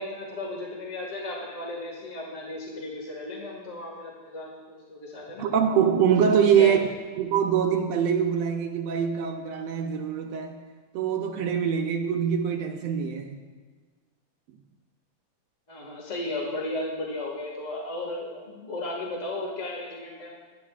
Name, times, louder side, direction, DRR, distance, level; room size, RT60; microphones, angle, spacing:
voice 1, 0.0-5.5 6.4-6.8 15.7-20.3, left 2 dB, 30° left, 1.9 m, -35 dB
voice 2, 5.4-6.8 7.2-10.6 10.9-13.4, right 8 dB, 70° right, 1.8 m, -24 dB
26.0 x 10.5 x 2.5 m
omnidirectional pair, 3.3 m